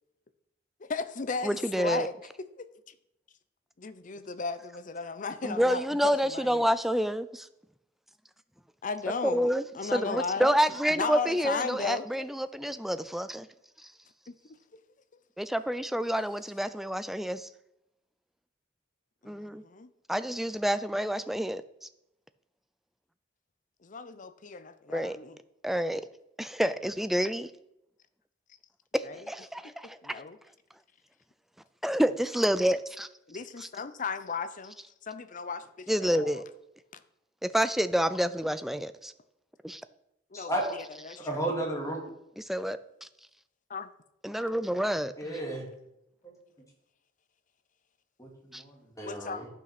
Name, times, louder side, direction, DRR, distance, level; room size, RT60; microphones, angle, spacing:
voice 1, 0.8-2.1 2.6-2.7 3.8-6.7 8.8-10.5 10.9-12.3 14.3-14.4 19.2-19.9 23.8-25.4 29.0-29.2 29.6-29.7 30.0-30.4 33.3-34.8 35.0-36.4 40.3-41.7 43.7-43.9 49.0-49.4, left 4 dB, 45° left, 0.6 m, -36 dB
voice 2, 1.4-2.1 5.4-7.5 9.2-9.6 9.9-13.5 15.4-17.5 19.3-19.6 20.1-21.6 24.9-25.2 25.6-26.0 26.4-27.5 28.9-30.2 31.8-33.1 35.9-36.4 37.4-39.1 39.6-39.8 42.4-43.1 44.2-45.3 48.5-48.6, equal, ahead, 0.4 m, -28 dB
voice 3, 41.2-42.0 45.2-45.7 46.2-46.3 48.2-49.5, right 1 dB, 20° left, 2.3 m, -33 dB
10.5 x 5.9 x 5.9 m
head